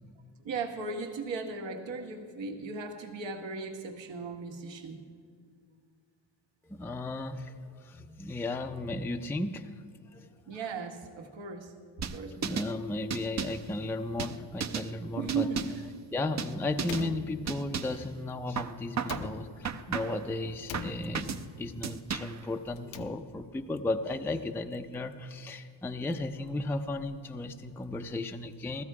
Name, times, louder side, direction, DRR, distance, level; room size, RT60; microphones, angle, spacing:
voice 1, 0.4-5.0 10.5-11.7 12.1-12.7 14.5-14.6 15.1-15.7, right 4 dB, 75° right, 4 dB, 1.6 m, -37 dB
voice 2, 6.7-9.7 10.1-10.3 12.4-15.5 16.1-28.8, left 2 dB, 5° left, 5 dB, 0.4 m, -35 dB
sound 1, 12.0-12.7 13.1-13.7 14.2-14.9 15.3-15.9 16.4-16.5 16.8-17.1 17.5-18.0 18.6-19.3 19.6-20.3 20.7-21.4 21.8-22.4, right 7 dB, 40° right, 0.6 m, -34 dB
Slam, 16.8-18.0 19.0-19.9 20.7-21.6 22.7-23.6, left 7 dB, 90° left, 0.9 m, -43 dB
16.5 x 13.5 x 4.8 m, 2.1 s
cardioid pair, 110°, 45 cm